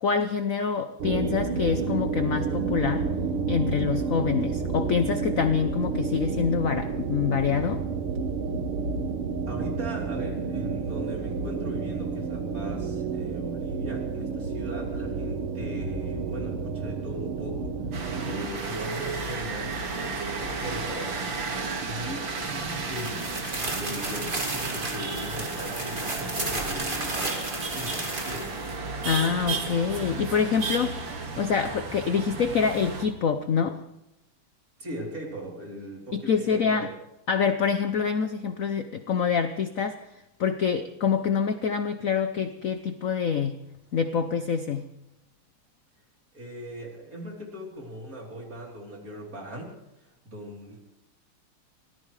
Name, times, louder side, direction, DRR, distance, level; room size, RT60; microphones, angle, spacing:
voice 1, 0.0-3.0 3.5-7.8 29.0-31.0 31.4-33.8 36.1-36.9 37.3-40.0 40.4-43.6 43.9-44.9, left 6 dB, 75° left, 9 dB, 0.7 m, -26 dB
sound 1, 1.0-18.5, right 4 dB, 85° right, 2.0 m, -30 dB
voice 2, 9.5-17.8 18.2-21.2 21.8-28.5 34.8-37.0 46.3-50.8, equal, 40° right, -1 dB, 3.8 m, -39 dB
sound 2, 17.9-33.0, right 4 dB, 60° right, 2.7 m, -33 dB
sound 3, 22.9-28.7, right 2 dB, 25° right, 2.2 m, -33 dB
24.5 x 17.5 x 3.2 m, 0.89 s
omnidirectional pair, 2.4 m